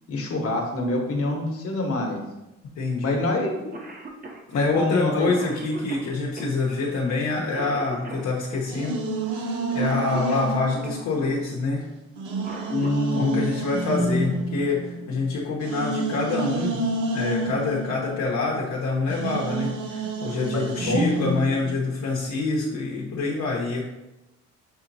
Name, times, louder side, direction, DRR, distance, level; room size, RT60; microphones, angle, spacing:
voice 1, 0.1-2.2 3.0-3.5 4.5-5.3 12.7-13.5 20.5-21.1, left 2 dB, 50° left, 1 dB, 1.1 m, -25 dB
voice 2, 2.8-3.2 4.5-9.0 9.3-11.9 13.1-16.9 17.1-23.9, left 3 dB, 65° left, -4 dB, 0.9 m, -26 dB
Cough, 3.4-3.5 3.7-11.0 12.2-13.2 14.8-14.9 16.0-16.3 16.7-16.8 17.2-17.7, right 2 dB, 30° right, 0.7 m, -40 dB
sound 1, 8.7-11.7 12.1-18.7 19.1-21.8, right 2 dB, 85° right, 0.7 m, -29 dB
6.1 x 2.9 x 2.6 m, 0.97 s
cardioid pair, 90°, 30 cm